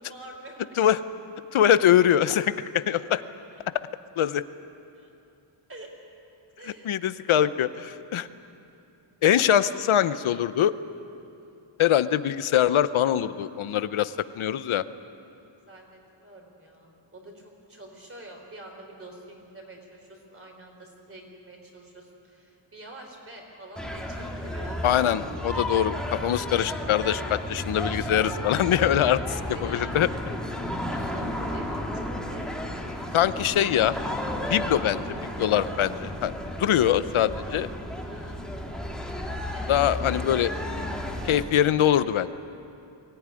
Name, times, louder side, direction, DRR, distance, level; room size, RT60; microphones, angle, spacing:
voice 1, 0.1-0.8 3.5-3.6 4.9-5.1 5.7-5.9 6.6-7.0 11.3-11.6 15.6-24.8 29.1-30.2 30.8-32.5 33.1-33.5 38.0-38.4 39.5-40.3, right 1 dB, 25° right, 1 dB, 3.9 m, -46 dB
voice 2, 1.5-3.2 4.2-4.4 6.8-8.3 9.2-10.7 11.8-14.8 24.8-29.2 29.6-30.1 33.1-33.9 34.5-36.3 36.6-37.7 39.7-40.5 41.2-42.3, left 10 dB, 80° left, 13 dB, 0.8 m, -23 dB
sound 1, 23.8-41.5, left 1 dB, ahead, 1.9 m, -33 dB
23.5 x 17.5 x 9.8 m, 2.7 s
wide cardioid pair, 180°, 48 cm